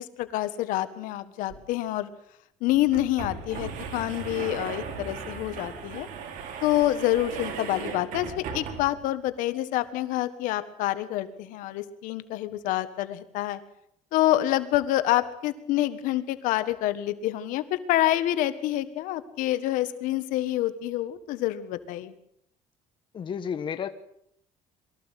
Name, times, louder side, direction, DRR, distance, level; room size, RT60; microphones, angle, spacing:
voice 1, 0.0-2.1 2.6-6.1 6.6-13.6 14.1-22.1, left 14 dB, 90° left, 12 dB, 1.6 m, -27 dB
sound 1, 1.5-1.6 1.9-2.0 2.7-9.1, right 6 dB, 80° right, 3.4 m, -37 dB
voice 2, 23.1-23.9, left 7 dB, 40° left, 9 dB, 1.3 m, -31 dB
23.0 x 14.5 x 8.3 m, 0.75 s
cardioid pair, 135°, 13 cm